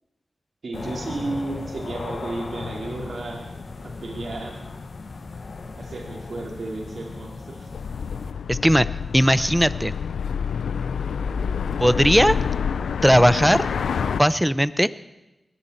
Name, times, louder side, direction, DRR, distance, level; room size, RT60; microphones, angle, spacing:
voice 1, 0.6-3.4 3.8-4.6 5.7-7.7, right 2 dB, 65° right, -1 dB, 4.5 m, -33 dB
sound 1, 0.7-8.3, left 3 dB, 65° left, 1.3 m, -37 dB
sound 2, 7.7-14.2, left 6 dB, 90° left, 0.5 m, -27 dB
voice 2, 8.5-8.9 9.1-9.9 11.8-12.4 13.0-13.7 14.2-14.9, equal, 5° right, 16 dB, 0.7 m, -18 dB
20.0 x 15.0 x 4.5 m, 0.99 s
cardioid pair, 45°, 0 cm